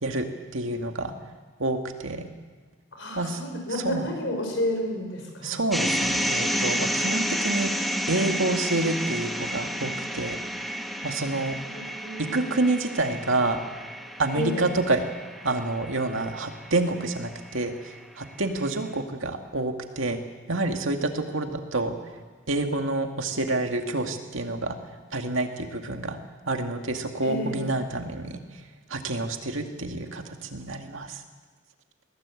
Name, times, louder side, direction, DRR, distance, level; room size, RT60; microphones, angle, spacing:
voice 1, 0.5-1.1 1.6-2.3 3.1-3.4 3.8-4.0 5.4-7.7 8.1-10.4 11.0-11.6 12.3-13.6 14.2-15.0 15.4-20.2 20.5-22.0 22.5-24.8 25.1-26.2 26.5-28.4 28.9-31.2, right 2 dB, 75° right, 4 dB, 2.2 m, -28 dB
voice 2, 2.9-5.6 11.6-12.8 14.3-14.7 27.2-27.7, left 1 dB, 65° left, 3 dB, 5.7 m, -31 dB
sound 1, 5.7-17.8, equal, ahead, 1.4 m, -31 dB
21.5 x 18.0 x 8.5 m, 1.5 s
head